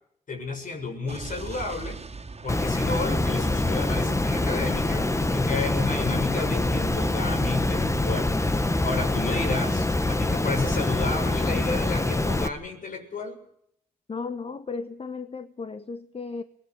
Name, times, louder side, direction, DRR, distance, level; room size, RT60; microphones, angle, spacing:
voice 1, 0.3-2.0 2.4-13.4, left 3 dB, 60° left, 7.2 m, -32 dB
Explosion, 1.1-5.1, right 4 dB, 45° right, 2.7 m, -42 dB
Water, 2.5-12.5, left 2 dB, 20° left, 1.7 m, -25 dB
sound 1, 3.1-8.3, right 3 dB, 25° right, 2.0 m, -40 dB
voice 2, 14.1-16.4, left 4 dB, 40° left, 1.4 m, -35 dB
24.0 x 19.5 x 6.2 m
supercardioid pair, 50°, 15 cm